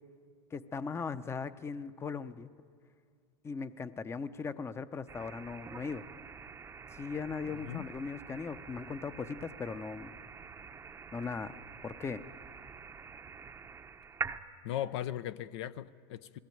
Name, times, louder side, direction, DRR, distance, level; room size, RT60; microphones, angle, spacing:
voice 1, 0.5-2.5 3.4-6.0 6.9-10.1 11.1-11.6 11.8-12.2, left 5 dB, 15° left, 13 dB, 0.7 m, -39 dB
sound 1, 5.1-14.4, right 5 dB, 15° right, 0.7 m, -46 dB
voice 2, 7.4-7.9 14.6-16.4, left 11 dB, 70° left, 13 dB, 0.6 m, -38 dB
20.0 x 16.5 x 9.2 m, 2.2 s
supercardioid pair, 120°, 15 cm